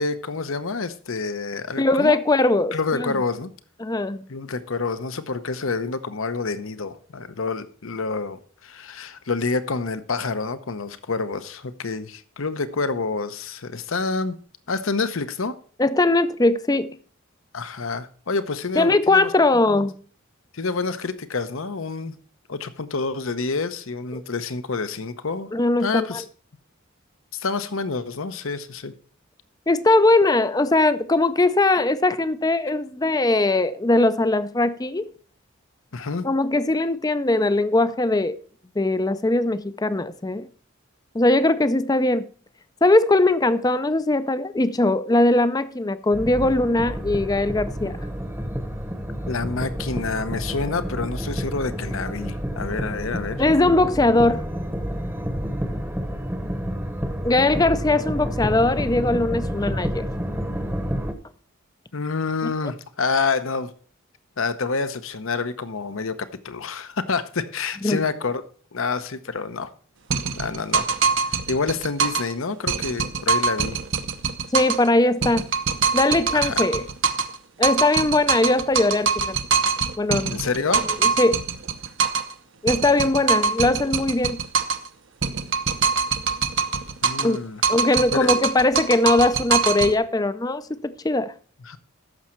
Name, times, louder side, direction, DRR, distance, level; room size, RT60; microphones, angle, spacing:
voice 1, 0.0-2.2 2.7-3.5 4.3-14.4 14.7-15.6 17.5-19.3 19.7-19.9 20.5-22.1 22.5-25.5 25.8-26.2 27.3-28.9 35.9-36.3 49.3-53.4 61.9-63.7 64.4-68.4 68.7-69.7 70.4-70.9 71.2-73.8 76.3-76.6 80.3-80.9 87.0-87.6 88.1-88.4 91.6-91.8, left 4 dB, 70° left, 0.9 m, -28 dB
voice 2, 1.8-3.1 3.8-4.2 15.8-17.0 18.8-19.9 24.1-24.2 25.5-26.2 29.7-35.1 36.2-38.4 38.8-40.5 41.1-42.3 42.8-48.0 53.4-54.5 57.2-60.1 62.4-62.5 67.8-68.0 74.5-75.5 75.9-76.9 77.6-79.4 80.0-80.4 80.7-80.8 81.2-81.4 82.6-84.4 87.2-87.4 87.7-91.3, left 2 dB, 20° left, 0.5 m, -20 dB
sound 1, 46.1-61.1, equal, 10° right, 0.9 m, -29 dB
sound 2, 70.1-72.3 72.7-74.9 75.2-77.4 77.6-82.3 82.7-84.9 85.2-87.4 87.6-89.9, right 5 dB, 60° right, 0.8 m, -23 dB
14.5 x 6.3 x 4.4 m
head